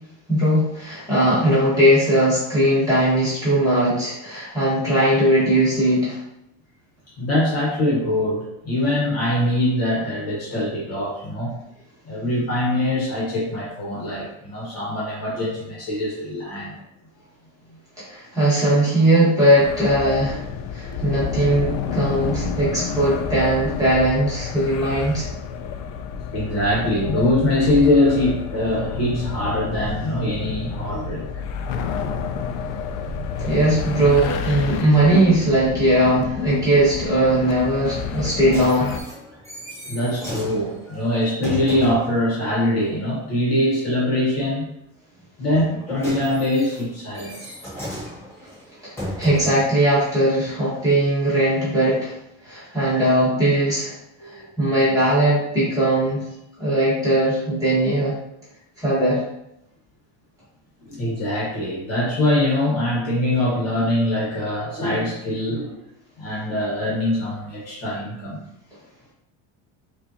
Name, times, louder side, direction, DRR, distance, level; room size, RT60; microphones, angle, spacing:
voice 1, 0.3-6.2 18.0-20.4 20.7-25.3 33.4-39.0 48.8-52.1 52.4-54.0 54.2-56.2 56.6-58.2 58.8-59.2, right 1 dB, 10° right, -10 dB, 1.4 m, -19 dB
voice 2, 7.2-11.5 12.0-16.8 26.3-31.2 39.9-44.7 45.4-47.6 54.2-54.5 60.8-65.7 66.2-68.4, left 1 dB, 40° left, -5 dB, 1.3 m, -23 dB
sound 1, 19.6-39.0, left 6 dB, 75° left, 0.5 m, -29 dB
sound 2, 38.1-42.2 45.5-49.7 50.5-50.6, equal, 5° left, 0.8 m, -35 dB
5.3 x 2.5 x 2.8 m, 0.82 s
cardioid pair, 180°, 39 cm